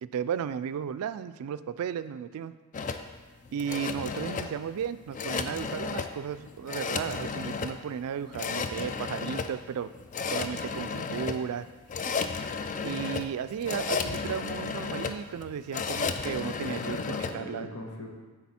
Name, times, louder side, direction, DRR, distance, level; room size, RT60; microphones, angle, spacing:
voice 1, 0.0-2.5 3.5-9.9 10.3-11.7 12.8-17.0 17.3-17.7, right 8 dB, 70° right, 15 dB, 0.3 m, -34 dB
sound 1, 2.7-17.3, left 5 dB, 35° left, 0.4 m, -33 dB
voice 2, 16.6-18.1, left 2 dB, 75° left, 1 dB, 1.2 m, -39 dB
10.0 x 4.0 x 4.3 m, 1.3 s
head